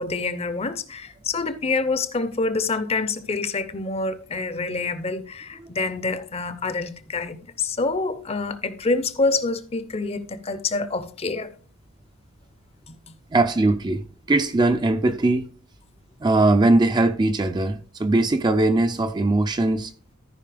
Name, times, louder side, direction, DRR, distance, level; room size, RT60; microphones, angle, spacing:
voice 1, 0.0-11.5 12.9-13.0, left 3 dB, 25° left, 0.6 m, -26 dB
voice 2, 13.3-15.5 16.2-19.9, right 2 dB, 20° right, 0.4 m, -20 dB
13.5 x 5.2 x 3.3 m
head